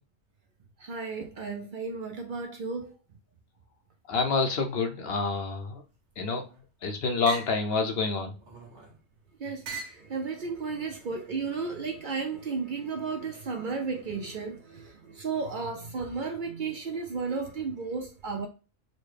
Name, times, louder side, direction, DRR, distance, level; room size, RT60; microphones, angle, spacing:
voice 1, 0.8-2.9 9.4-18.5, right 4 dB, 55° right, 0.6 m, -34 dB
voice 2, 4.1-5.8 6.2-6.4 6.8-8.3, left 4 dB, 65° left, 0.8 m, -27 dB
sound 1, 6.1-6.7 7.3-7.6 8.4-9.0 9.6-10.1 10.9-11.5, right 4 dB, 80° right, 1.3 m, -42 dB
4.1 x 2.1 x 3.2 m
omnidirectional pair, 1.2 m